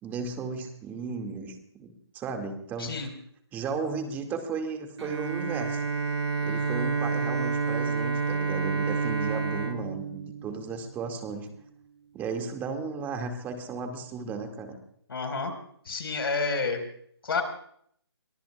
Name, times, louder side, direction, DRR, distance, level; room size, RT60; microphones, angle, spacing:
voice 1, 0.0-3.0 3.5-5.8 6.4-11.5 12.1-14.8, right 4 dB, 15° right, 5 dB, 1.9 m, -35 dB
Bowed string instrument, 5.0-11.0, right 4 dB, 80° right, 2.1 m, -29 dB
voice 2, 15.1-15.5 15.8-16.8 17.2-17.4, left 4 dB, 60° left, 5 dB, 4.4 m, -29 dB
23.5 x 22.5 x 2.3 m, 0.64 s
figure-of-eight pair, 150°, 14 cm